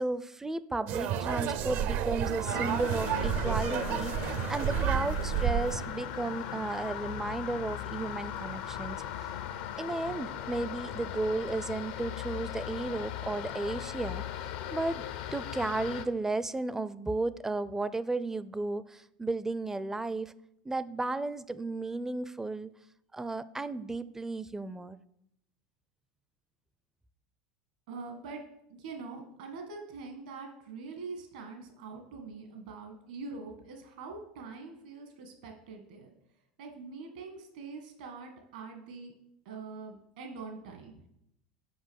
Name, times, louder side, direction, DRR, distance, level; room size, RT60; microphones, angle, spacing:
voice 1, 0.0-9.0 9.8-15.0 15.3-20.3 20.6-22.7 23.1-25.0, right 2 dB, 10° right, 16 dB, 0.4 m, -34 dB
sound 1, 0.9-5.9, right 9 dB, 55° right, 0.6 m, -31 dB
sound 2, 2.4-16.0, left 10 dB, 70° left, 0.6 m, -38 dB
voice 2, 27.9-28.4 28.7-36.1 36.6-39.1 39.5-41.2, right 4 dB, 75° right, 4 dB, 1.7 m, -44 dB
6.3 x 5.0 x 6.3 m, 0.78 s
hypercardioid pair, 95°, 4 cm